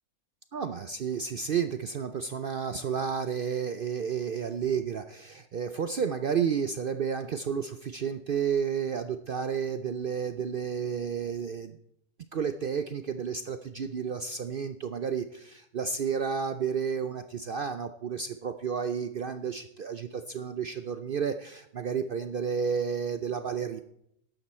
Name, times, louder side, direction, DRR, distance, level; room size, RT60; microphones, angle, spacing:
voice 1, 0.5-11.8 12.3-23.8, right 7 dB, 80° right, 9 dB, 0.4 m, -31 dB
13.0 x 11.0 x 4.3 m, 0.73 s
omnidirectional pair, 1.7 m